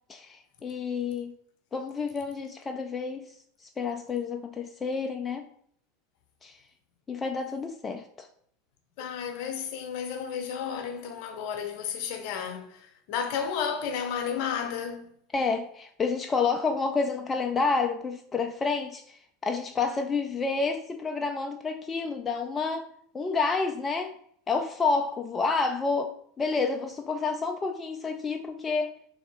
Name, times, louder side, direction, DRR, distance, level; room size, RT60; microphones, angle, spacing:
voice 1, 0.1-1.3 1.7-3.4 3.6-5.5 6.4-6.6 7.1-8.3 15.3-22.9 23.1-24.1 24.5-28.9, left 4 dB, 20° left, 0.4 m, -29 dB
voice 2, 9.0-15.1, left 7 dB, 55° left, 0.8 m, -32 dB
3.5 x 3.1 x 4.2 m
figure-of-eight pair, 80°, 0 cm